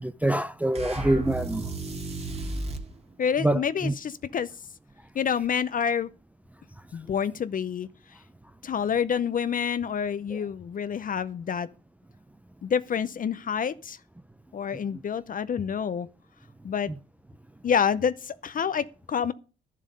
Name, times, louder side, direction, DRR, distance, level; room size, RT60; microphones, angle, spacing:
voice 1, 0.0-1.6 3.4-3.9 10.3-10.4 16.9-17.0, right 1 dB, 5° right, 0.5 m, -25 dB
sound 1, 0.7-2.9, right 2 dB, 30° right, 1.8 m, -33 dB
voice 2, 3.2-4.5 5.1-6.1 6.9-7.9 8.6-11.7 12.6-14.0 14.5-16.1 16.6-16.9 17.6-19.3, left 7 dB, 45° left, 0.6 m, -28 dB
12.0 x 7.5 x 5.2 m
cardioid pair, 90°, 20 cm